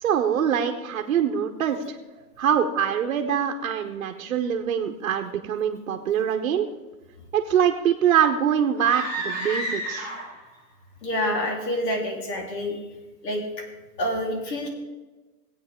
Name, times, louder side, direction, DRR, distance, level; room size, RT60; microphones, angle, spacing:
voice 1, 0.0-2.0 2.4-6.7 7.3-10.1, right 8 dB, 50° right, 3 dB, 0.9 m, -24 dB
sound 1, 8.7-10.5, right 1 dB, 20° left, 1.6 m, -31 dB
voice 2, 11.0-12.8 13.2-13.4 14.0-14.7, left 1 dB, 80° left, 1 dB, 3.7 m, -27 dB
16.0 x 9.0 x 3.6 m, 1.2 s
hypercardioid pair, 180°, 49 cm